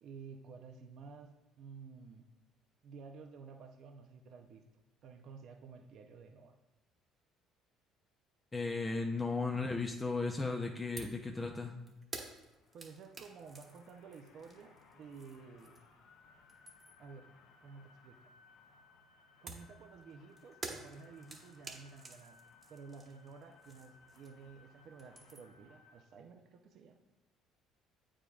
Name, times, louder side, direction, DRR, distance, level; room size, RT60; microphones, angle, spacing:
voice 1, 0.0-2.3 2.8-4.7 5.0-6.6 12.7-15.8 17.0-17.3 17.6-18.2 19.4-22.4 22.7-27.0, right 5 dB, 60° right, 5 dB, 0.5 m, -53 dB
voice 2, 8.5-11.7, left 3 dB, 25° left, 2 dB, 0.6 m, -35 dB
sound 1, 11.0-11.2 11.5-16.0 16.3-17.1 19.5-24.6 24.8-25.6, right 3 dB, 35° right, 1.2 m, -50 dB
sound 2, 12.3-26.0, left 4 dB, 75° left, 0.9 m, -64 dB
8.5 x 4.9 x 2.4 m, 1.1 s
hypercardioid pair, 70°, 0 cm